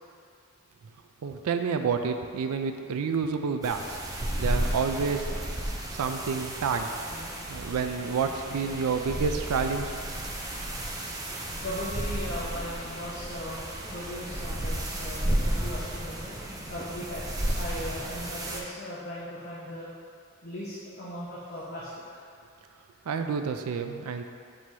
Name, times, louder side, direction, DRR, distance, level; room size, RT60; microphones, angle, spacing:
voice 1, 1.2-4.0 4.4-5.3 5.9-6.9 7.5-9.9 23.1-24.2, right 5 dB, 85° right, 6 dB, 0.4 m, -29 dB
sound 1, 3.6-18.6, right 1 dB, 15° right, 0.5 m, -33 dB
voice 2, 11.6-19.9 20.4-22.0, left 1 dB, 45° left, -7 dB, 0.8 m, -38 dB
7.5 x 2.8 x 4.6 m, 2.2 s
head